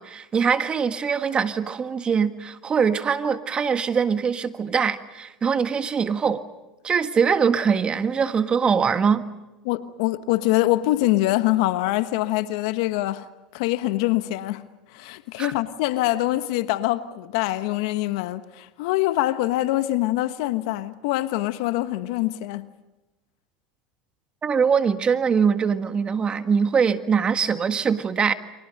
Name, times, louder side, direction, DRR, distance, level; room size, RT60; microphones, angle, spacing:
voice 1, 0.0-6.4 6.8-9.2 15.4-15.5 24.4-28.3, right 6 dB, 30° right, 1.7 m, -22 dB
voice 2, 9.6-13.3 13.5-14.6 14.9-22.7, left 16 dB, 70° left, 1.2 m, -24 dB
30.0 x 25.0 x 5.4 m
hypercardioid pair, 90°, 3 cm